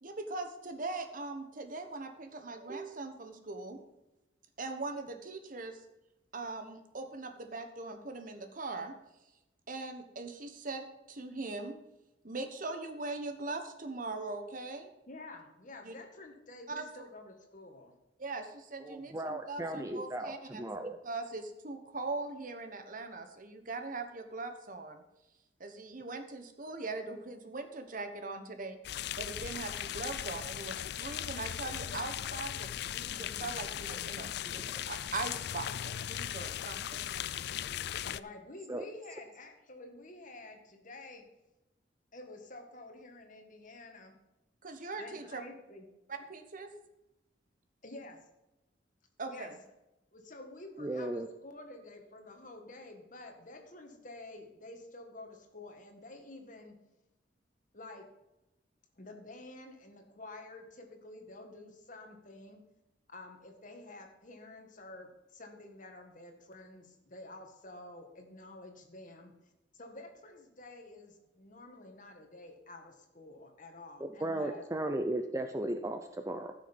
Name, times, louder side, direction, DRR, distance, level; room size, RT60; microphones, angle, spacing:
voice 1, 0.0-3.8 4.6-5.8 6.3-8.9 9.7-11.7 12.2-14.9 15.8-15.9 16.7-16.8 18.2-20.7 21.0-25.0 25.6-28.8 29.2-37.0 37.3-37.4 44.6-45.4 46.1-46.7 49.2-49.5, right 3 dB, 45° right, 7 dB, 1.3 m, -41 dB
voice 2, 15.1-18.0 38.0-41.3 42.1-44.2 45.0-45.9 47.8-48.2 49.3-49.5 50.1-56.8 57.7-58.1 59.0-62.6 63.1-69.5 69.8-74.6, left 2 dB, 45° left, 4 dB, 1.9 m, -50 dB
voice 3, 18.8-21.0 34.8-34.9 38.7-38.8 50.8-51.3 74.2-76.5, right 1 dB, 15° right, 7 dB, 0.6 m, -36 dB
sound 1, 28.8-38.2, left 11 dB, 60° left, 0.4 m, -38 dB
14.5 x 6.5 x 5.3 m, 0.96 s
head